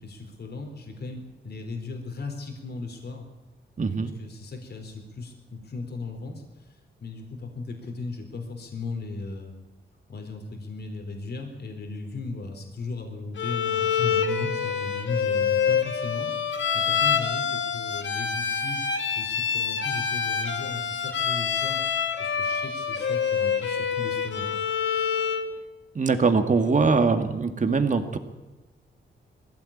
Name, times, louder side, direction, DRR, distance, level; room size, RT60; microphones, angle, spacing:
voice 1, 0.0-3.2 4.2-6.4 7.0-9.5 10.1-18.8 19.2-21.8 22.2-24.6, left 3 dB, 55° left, 4 dB, 3.8 m, -36 dB
voice 2, 3.8-4.1 25.9-28.2, right 4 dB, 40° right, 7 dB, 2.2 m, -22 dB
Bowed string instrument, 13.4-25.5, left 7 dB, 75° left, 2.3 m, -26 dB
20.5 x 15.5 x 8.8 m, 1.1 s
cardioid pair, 90°, 20 cm